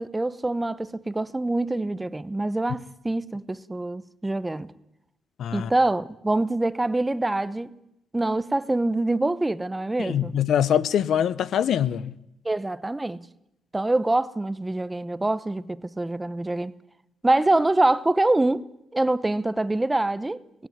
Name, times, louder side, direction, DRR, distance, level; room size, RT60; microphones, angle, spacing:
voice 1, 0.0-4.7 5.5-7.7 8.1-10.3 12.4-13.3 13.7-16.7 17.2-20.7, right 2 dB, 15° right, 0.8 m, -25 dB
voice 2, 5.4-5.7 10.0-12.1, left 9 dB, 70° left, 0.9 m, -23 dB
18.0 x 17.0 x 9.6 m
cardioid pair, 90°, 0 cm